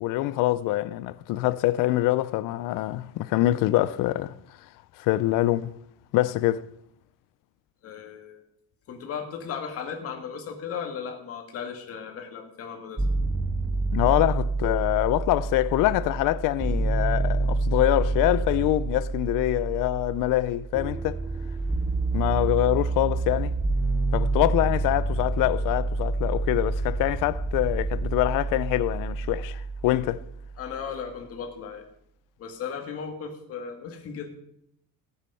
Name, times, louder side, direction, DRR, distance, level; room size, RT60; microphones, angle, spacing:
voice 1, 0.0-4.3 5.0-5.7 6.1-6.7 13.9-21.2 22.1-23.5 24.1-30.2, left 16 dB, 60° left, 0.6 m, -25 dB
voice 2, 7.8-8.5 8.9-13.0 30.6-31.8 32.4-34.3, left 6 dB, 40° left, 2.1 m, -36 dB
sound 1, 13.0-30.9, right 3 dB, 5° right, 0.4 m, -28 dB
15.0 x 8.7 x 5.6 m
cardioid pair, 175°, 36 cm